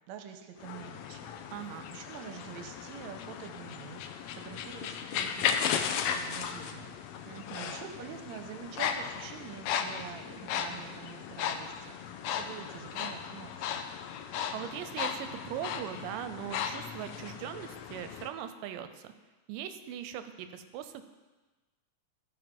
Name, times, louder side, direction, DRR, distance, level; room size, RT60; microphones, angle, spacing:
voice 1, 0.1-1.3 1.9-4.0 4.3-13.8, right 8 dB, 75° right, 6 dB, 1.8 m, -46 dB
sound 1, 0.6-18.3, left 8 dB, 90° left, 1.5 m, -36 dB
voice 2, 1.5-1.9 7.3-7.8 14.5-19.1 19.5-21.0, right 10 dB, 90° right, 10 dB, 2.2 m, -40 dB
13.5 x 4.6 x 5.2 m, 1.2 s
omnidirectional pair, 3.8 m